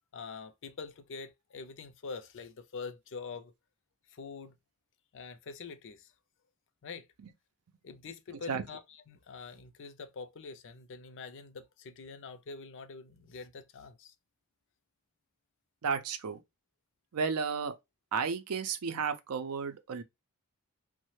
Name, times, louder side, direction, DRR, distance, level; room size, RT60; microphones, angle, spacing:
voice 1, 0.1-3.5 4.1-4.6 5.1-6.1 6.8-7.1 7.8-14.1, left 4 dB, 55° left, 0.4 m, -45 dB
voice 2, 15.8-16.4 17.1-17.7 18.1-20.0, right 5 dB, 80° right, 0.5 m, -33 dB
3.1 x 2.1 x 3.1 m
head